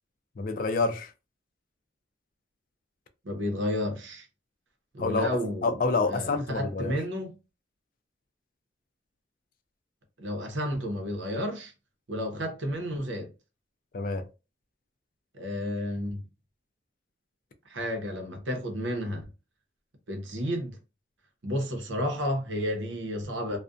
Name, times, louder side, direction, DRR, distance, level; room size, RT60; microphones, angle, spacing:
voice 1, 0.4-1.1 5.0-5.3 5.6-6.9 13.9-14.2, left 3 dB, 45° left, 0.3 m, -27 dB
voice 2, 3.2-4.3 4.9-5.8 6.0-7.4 10.2-11.7 12.1-13.3 15.3-16.2 17.7-19.2 20.1-20.8 21.4-23.6, equal, 90° right, 0.8 m, -31 dB
2.4 x 2.1 x 2.4 m
head